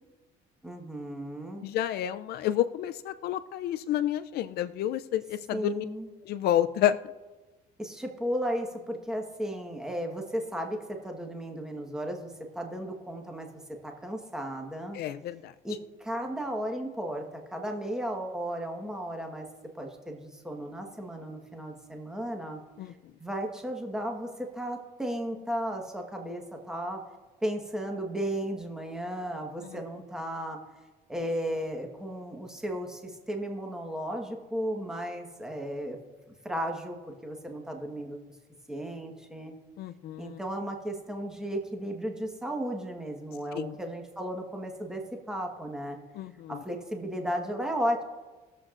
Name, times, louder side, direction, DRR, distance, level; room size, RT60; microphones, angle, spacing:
voice 1, 0.6-1.7 5.5-6.1 7.8-13.5 13.8-15.0 15.6-19.5 19.8-22.6 22.9-27.0 27.4-30.6 31.1-36.0 36.4-38.2 38.7-39.5 40.2-45.0 45.3-46.0 46.5-48.0, equal, 5° right, 2 dB, 1.3 m, -34 dB
voice 2, 1.6-5.9 6.3-7.0 14.9-15.5 22.8-22.9 39.8-40.4 43.5-43.7 46.2-46.6, left 11 dB, 70° left, 11 dB, 0.4 m, -29 dB
20.5 x 7.6 x 2.5 m, 1.3 s
cardioid pair, 110°, 17 cm